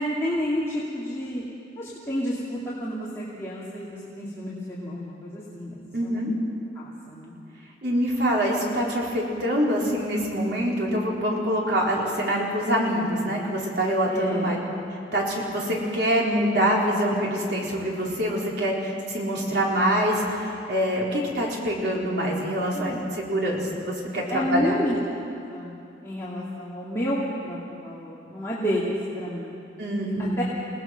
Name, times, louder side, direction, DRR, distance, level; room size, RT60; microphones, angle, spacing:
voice 1, 0.0-1.4 1.8-6.2 6.7-7.3 14.1-14.6 22.7-23.0 24.3-25.0 25.5-29.6 30.4-30.5, equal, 15° left, -8 dB, 2.7 m, -30 dB
voice 2, 5.9-6.3 7.8-14.6 15.1-24.8 29.8-30.4, equal, 65° right, -3 dB, 4.7 m, -25 dB
29.5 x 18.5 x 6.1 m, 2.7 s
head